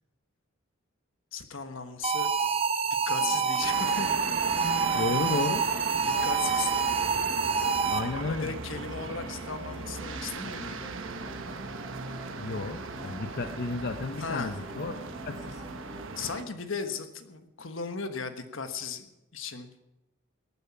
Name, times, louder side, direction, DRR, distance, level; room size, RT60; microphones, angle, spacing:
voice 1, 1.3-2.3 3.1-4.1 6.0-6.7 8.1-10.9 14.2-14.5 16.2-19.9, left 5 dB, 75° left, 8 dB, 1.3 m, -36 dB
sound 1, 2.0-8.3, right 5 dB, 30° right, 0.6 m, -27 dB
sound 2, 3.2-16.0, equal, 5° right, 0.9 m, -47 dB
sound 3, 3.6-16.4, right 3 dB, 75° right, 1.1 m, -38 dB
voice 2, 4.9-5.7 7.9-8.5 12.4-15.0 15.3-15.6, left 3 dB, 55° left, 8 dB, 0.6 m, -32 dB
18.5 x 9.1 x 5.9 m, 0.94 s
head